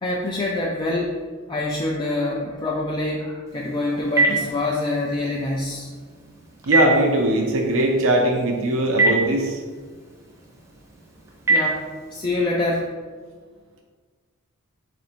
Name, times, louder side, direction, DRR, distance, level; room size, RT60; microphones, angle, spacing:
voice 1, 0.0-1.2 1.5-5.9 11.5-11.8 12.1-13.0, left 2 dB, 20° left, -3 dB, 0.3 m, -25 dB
Telephone, 3.5-12.3, right 3 dB, 15° right, 0.7 m, -27 dB
voice 2, 6.7-9.6, right 1 dB, 60° right, 2 dB, 0.5 m, -20 dB
4.0 x 2.6 x 4.3 m, 1.5 s
head